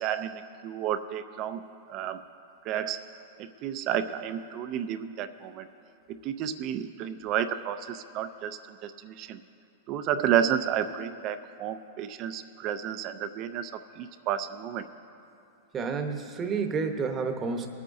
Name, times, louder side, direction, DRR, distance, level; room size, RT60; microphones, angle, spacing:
voice 1, 0.0-1.6 1.9-2.2 2.7-3.0 3.4-5.7 6.1-9.4 9.9-13.7 14.0-14.9, right 9 dB, 40° right, 10 dB, 0.4 m, -31 dB
voice 2, 15.7-17.7, right 5 dB, 25° right, 5 dB, 0.9 m, -30 dB
23.5 x 8.5 x 2.7 m, 2.7 s
hypercardioid pair, 140°, 0 cm